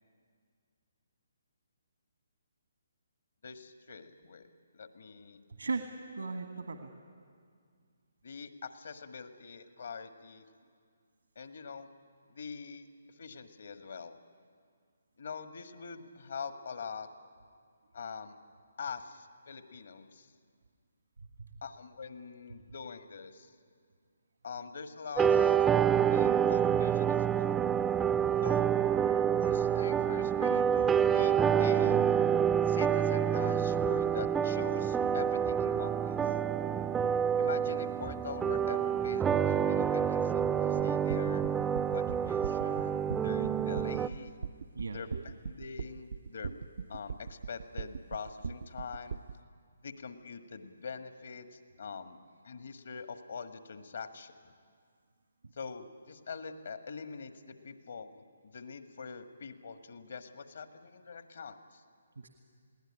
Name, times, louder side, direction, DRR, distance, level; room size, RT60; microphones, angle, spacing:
voice 1, 3.4-4.5 4.7-5.4 8.2-10.4 11.3-11.9 12.3-12.8 13.2-14.2 15.2-17.1 17.9-18.4 18.8-20.3 21.6-23.5 24.4-25.6 26.1-27.5 28.4-28.7 29.4-32.0 32.6-36.3 37.4-41.4 41.9-44.3 44.9-46.5 46.9-49.2 49.8-52.2 52.4-54.5 55.5-61.8, left 5 dB, 65° left, 8 dB, 1.6 m, -44 dB
voice 2, 6.1-6.9 29.1-29.8 44.7-45.0 62.2-62.3, right 4 dB, 80° right, 5 dB, 1.6 m, -38 dB
sound 1, 25.2-44.1, right 8 dB, 10° right, 0.5 m, -28 dB
sound 2, 40.8-49.3, right 5 dB, 60° right, 0.5 m, -40 dB
21.0 x 16.5 x 9.9 m, 2.1 s
figure-of-eight pair, 145°, 0 cm